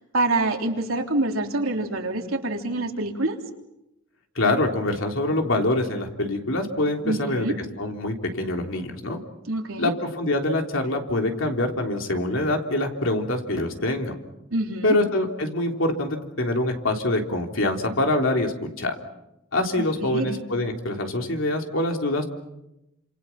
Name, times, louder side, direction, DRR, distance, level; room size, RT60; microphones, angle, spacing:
voice 1, 0.1-3.4 7.0-7.6 9.5-9.9 14.5-14.9 19.8-20.4, right 2 dB, 80° right, 2 dB, 3.4 m, -26 dB
voice 2, 4.4-9.2 9.8-14.2 14.8-18.9 19.5-22.2, left 1 dB, 65° left, 3 dB, 3.5 m, -25 dB
30.0 x 27.5 x 6.0 m, 0.90 s
head